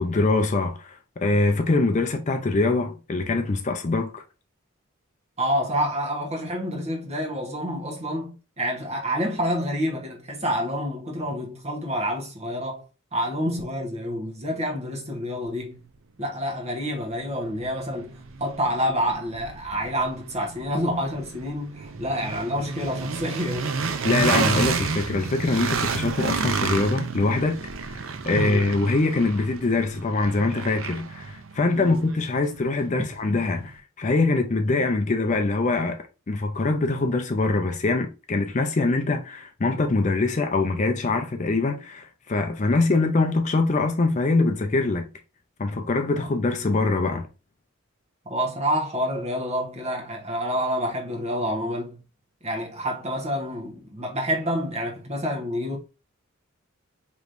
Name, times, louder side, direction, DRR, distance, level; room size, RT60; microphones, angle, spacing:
voice 1, 0.0-4.2 24.0-27.6 27.8-45.0 45.6-47.3, left 3 dB, 35° left, 0.5 m, -23 dB
voice 2, 5.4-12.9 13.1-15.9 16.2-23.7 24.3-24.5 28.3-28.7 31.7-32.0 48.2-52.0 52.4-55.8, equal, 30° right, 1.1 m, -28 dB
sound 1, 16.7-16.8 17.2-33.2, right 5 dB, 65° right, 0.5 m, -31 dB
sound 2, 21.9-26.5, right 2 dB, 15° right, 0.8 m, -46 dB
4.9 x 3.0 x 2.6 m
head